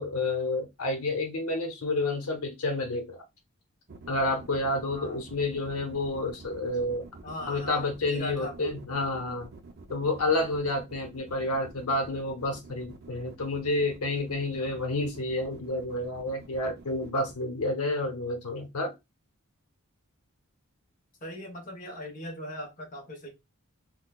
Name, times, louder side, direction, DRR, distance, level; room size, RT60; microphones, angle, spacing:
voice 1, 0.0-3.2 4.1-7.0 7.5-9.5 9.9-18.9, left 2 dB, 80° left, 0.9 m, -29 dB
sound 1, 3.9-17.3, right 3 dB, 45° right, 0.5 m, -48 dB
voice 2, 4.9-5.2 7.2-8.8 21.2-23.3, equal, 35° left, 0.9 m, -39 dB
3.8 x 2.2 x 2.3 m
head